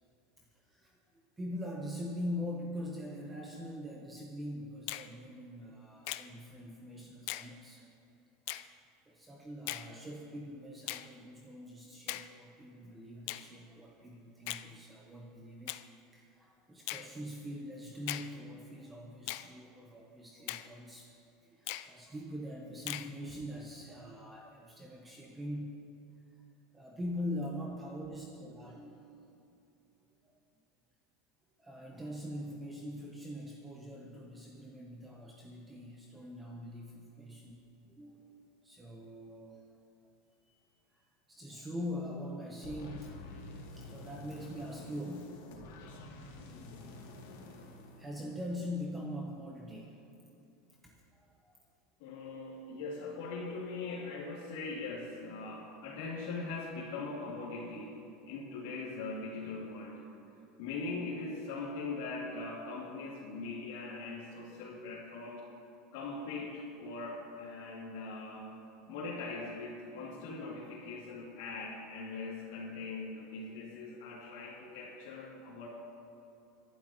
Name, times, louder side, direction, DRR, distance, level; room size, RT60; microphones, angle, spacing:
voice 1, 0.4-1.0 1.4-7.9 9.1-15.8 16.1-21.1 21.4-25.8 26.3-26.4 26.7-29.4 30.2-30.3 31.6-39.8 40.4-43.2 43.6-45.4 45.7-46.4 46.7-47.0 48.0-50.0 50.8-51.5, left 1 dB, 10° right, -1 dB, 0.9 m, -43 dB
Finger snapping, 4.9-5.1 6.1-6.3 7.3-7.5 8.5-8.7 9.7-9.9 10.9-11.1 12.1-12.3 13.3-13.5 14.5-14.7 15.7-15.9 16.9-17.1 18.1-18.3 19.3-19.5 20.5-20.7 21.7-21.9 22.9-23.1, left 16 dB, 55° left, 0.4 m, -39 dB
sound 1, 42.6-48.8, left 2 dB, 90° left, 2.5 m, -49 dB
voice 2, 52.0-58.0 58.3-60.0 60.6-65.4 65.9-68.6 68.9-75.7, left 3 dB, 70° left, -6 dB, 2.6 m, -41 dB
23.0 x 12.0 x 3.0 m, 2.8 s
supercardioid pair, 170°, 0 cm